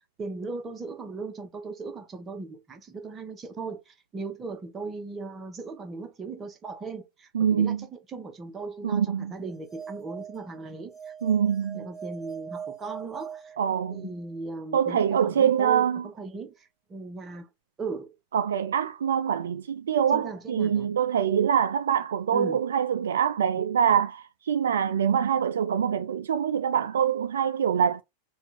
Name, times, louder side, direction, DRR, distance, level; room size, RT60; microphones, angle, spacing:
voice 1, 0.2-11.1 11.7-13.6 13.9-17.5 17.8-18.1 20.1-21.0 22.3-22.7, right 4 dB, 20° right, 1.1 m, -38 dB
voice 2, 7.3-7.8 8.8-9.3 11.2-11.8 13.6-14.0 14.7-16.0 18.3-28.0, right 8 dB, 65° right, 0.3 m, -24 dB
sound 1, 9.4-14.3, right 7 dB, 5° left, 1.5 m, -42 dB
4.1 x 2.5 x 4.4 m
figure-of-eight pair, 90°, 0 cm